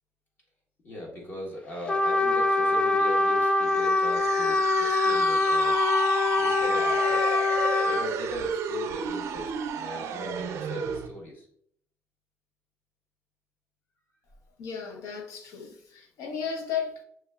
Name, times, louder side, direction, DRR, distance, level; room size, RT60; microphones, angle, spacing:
voice 1, 0.8-5.8 6.4-7.3 7.8-11.5, left 1 dB, 40° left, 1.4 m, -39 dB
Trumpet, 1.9-8.1, left 2 dB, 20° left, 0.3 m, -23 dB
sound 1, 3.7-11.1, right 7 dB, 65° right, 0.4 m, -33 dB
voice 2, 14.6-17.0, left 7 dB, 85° left, 0.8 m, -34 dB
5.8 x 3.3 x 2.3 m
cardioid pair, 155°, 5 cm